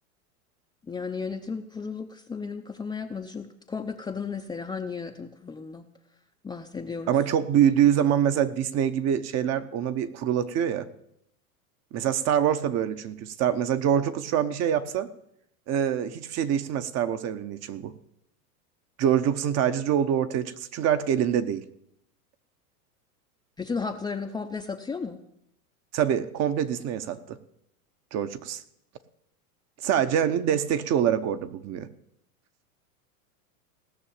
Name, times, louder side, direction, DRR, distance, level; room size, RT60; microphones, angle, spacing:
voice 1, 0.9-5.9 6.4-7.2 23.6-25.2, left 5 dB, 10° left, 4 dB, 0.6 m, -34 dB
voice 2, 7.1-10.9 11.9-15.1 15.7-17.9 19.0-21.6 25.9-27.4 28.1-28.6 29.8-31.9, right 9 dB, 35° right, 11 dB, 0.9 m, -25 dB
17.0 x 6.4 x 8.6 m, 0.77 s
hypercardioid pair, 115°, 44 cm